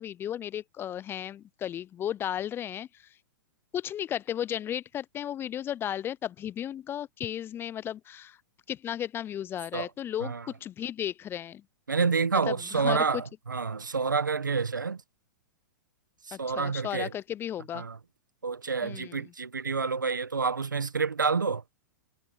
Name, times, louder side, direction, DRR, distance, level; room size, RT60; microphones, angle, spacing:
voice 1, 0.0-3.1 3.7-8.4 8.7-10.3 10.6-11.6 12.3-13.2 16.3-17.9 18.8-19.2, left 10 dB, 20° left, 0.5 m, -34 dB
voice 2, 11.9-15.0 16.2-17.1 17.7-18.0 18.4-21.6, right 5 dB, 90° right, 1.4 m, -28 dB
hypercardioid pair, 110°, 10 cm